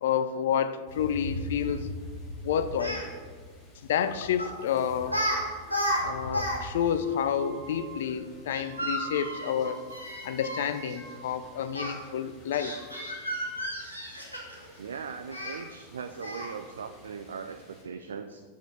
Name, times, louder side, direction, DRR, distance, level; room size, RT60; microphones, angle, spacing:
voice 1, 0.0-1.9 2.4-3.0 3.9-5.2 6.0-9.8 10.2-12.8, left 8 dB, 55° left, 12 dB, 0.4 m, -29 dB
Different birds birds swimming wind footsteps, 0.9-17.8, equal, 30° left, 2.3 m, -45 dB
Speech, 2.8-3.1 4.4-4.6 5.1-5.4 5.6-6.6 6.9-7.0 8.5-10.7 11.7-11.9 12.5-14.7 15.3-15.6 16.2-16.6, equal, 90° left, 1.4 m, -32 dB
sound 1, 7.0-12.3 12.6-13.7, right 3 dB, 15° right, 0.9 m, -47 dB
voice 2, 14.8-18.4, right 6 dB, 65° right, 7 dB, 0.3 m, -39 dB
6.3 x 4.8 x 5.5 m, 1.5 s
figure-of-eight pair, 90°, 0 cm